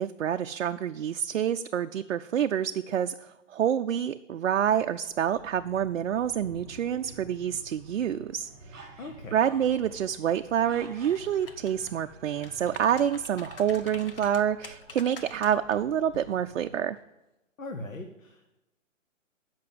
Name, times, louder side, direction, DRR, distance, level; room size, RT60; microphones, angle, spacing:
voice 1, 0.0-3.1 3.5-8.5 9.3-17.0, right 9 dB, 65° right, 6 dB, 0.5 m, -27 dB
sound 1, 4.8-16.8, right 2 dB, 20° right, 1.4 m, -51 dB
sound 2, 8.7-9.8 10.4-11.3 13.0-13.3 13.6-13.7 13.9-14.1 14.6-14.9 15.5-16.5 16.9-17.0, right 4 dB, ahead, 0.7 m, -51 dB
voice 2, 9.0-9.4 17.6-18.4, left 2 dB, 85° left, 5 dB, 1.3 m, -39 dB
sound 3, 10.9-11.9 12.3-15.8 16.1-16.3, left 4 dB, 45° left, 0.8 m, -47 dB
7.7 x 6.0 x 7.5 m, 0.97 s
hypercardioid pair, 170°, 39 cm